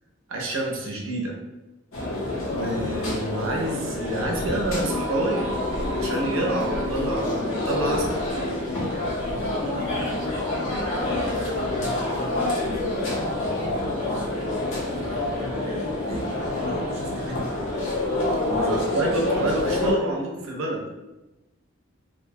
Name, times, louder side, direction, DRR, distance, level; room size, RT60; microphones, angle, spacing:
voice 1, 0.3-1.4 2.4-5.5 6.0-8.1 18.4-20.9, right 2 dB, 85° right, 0 dB, 0.6 m, -28 dB
sound 1, 1.9-19.9, left 1 dB, 80° left, 0.7 m, -27 dB
voice 2, 9.2-10.2 11.0-12.4 13.0-14.3 14.8-17.5 18.6-18.9, right 1 dB, 30° right, -4 dB, 0.5 m, -40 dB
2.6 x 2.1 x 2.6 m, 1.0 s
head